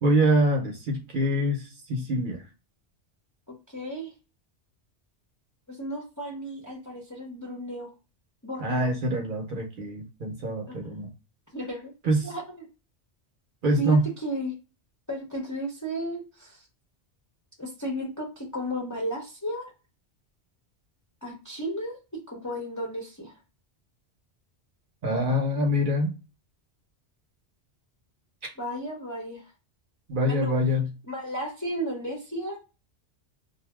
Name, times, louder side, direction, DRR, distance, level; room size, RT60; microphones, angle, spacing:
voice 1, 0.0-1.6 1.9-2.4 8.6-11.1 12.0-12.2 13.6-14.0 25.0-26.1 30.1-30.9, equal, 55° right, 2 dB, 0.8 m, -24 dB
voice 2, 3.7-4.1 5.7-7.9 8.4-8.9 10.7-10.8 11.5-11.9 12.2-12.7 13.8-14.5 15.1-16.6 17.6-19.7 21.2-23.3 28.6-29.5 30.3-30.5 31.1-32.6, right 1 dB, 20° left, -2 dB, 0.5 m, -34 dB
2.6 x 2.1 x 3.3 m, 0.31 s
omnidirectional pair, 1.1 m